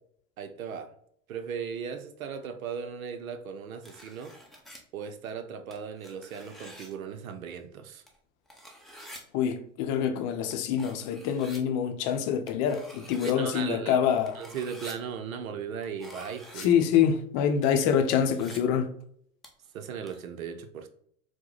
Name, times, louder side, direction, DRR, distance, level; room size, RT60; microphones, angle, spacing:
voice 1, 0.4-0.9 1.3-4.3 4.9-8.0 13.2-14.1 14.3-16.7 19.7-20.9, right 7 dB, 75° right, 0.7 m, -37 dB
sound 1, 3.8-4.8 5.7-7.0 8.1-8.2 8.5-9.2 10.5-10.6 10.8-11.6 12.5-13.3 14.3-14.9 15.8-16.7 17.6-18.6 19.4-19.7 20.1-20.2, equal, ahead, 0.7 m, -48 dB
voice 2, 9.3-14.4 16.6-18.9, left 8 dB, 45° left, 0.6 m, -26 dB
4.6 x 2.2 x 3.9 m
hypercardioid pair, 85°, 41 cm